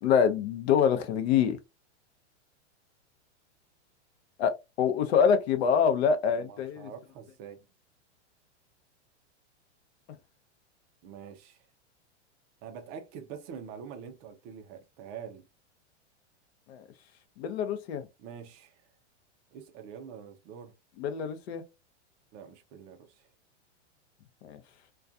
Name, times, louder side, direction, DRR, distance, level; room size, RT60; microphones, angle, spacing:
voice 1, 0.0-1.6 4.4-4.5 4.8-6.9 16.7-16.8 17.4-18.0 21.0-21.6 24.4-24.6, left 7 dB, 65° left, 0.7 m, -25 dB
voice 2, 6.3-7.7 11.0-11.7 12.6-15.5 18.2-18.8 19.5-20.7 22.3-23.3, right 7 dB, 25° right, 0.4 m, -45 dB
2.3 x 2.3 x 2.6 m
supercardioid pair, 145°, 35 cm